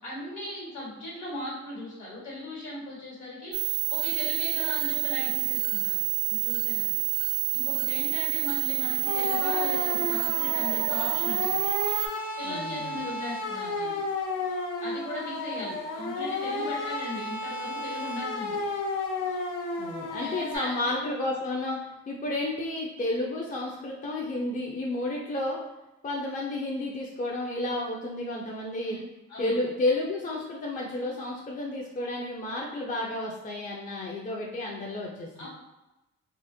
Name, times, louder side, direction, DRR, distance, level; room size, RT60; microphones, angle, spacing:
voice 1, 0.0-6.0 6.3-6.9 7.5-11.7 12.4-14.0 14.8-18.6 20.2-21.0 28.8-29.0 29.3-29.6 35.4-35.5, left 1 dB, 70° left, -6 dB, 1.4 m, -38 dB
sound 1, 3.5-12.1, right 15 dB, 60° right, 0.4 m, -28 dB
sound 2, 9.1-20.6, left 3 dB, 85° left, 0.5 m, -32 dB
voice 2, 12.4-13.0 19.8-25.6 26.0-29.0 29.4-35.5, left 2 dB, 25° left, -2 dB, 0.4 m, -31 dB
2.5 x 2.1 x 2.6 m, 0.99 s
cardioid pair, 90°, 30 cm